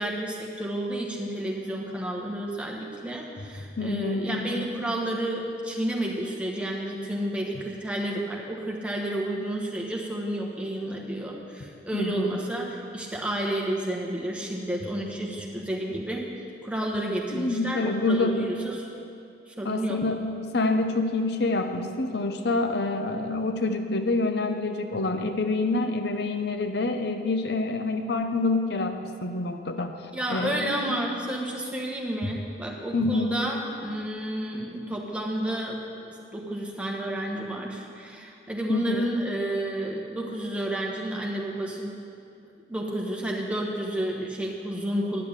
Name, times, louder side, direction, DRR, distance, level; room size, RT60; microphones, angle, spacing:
voice 1, 0.0-16.3 16.6-18.9 19.5-20.0 30.1-42.0 42.7-45.2, right 1 dB, 5° right, -2 dB, 1.3 m, -31 dB
voice 2, 3.8-4.7 11.9-12.4 17.3-18.5 19.6-30.0 30.3-30.7 32.2-32.3 32.9-33.3 38.7-39.0, left 2 dB, 65° left, 6 dB, 0.7 m, -27 dB
10.5 x 6.5 x 8.9 m, 2.5 s
head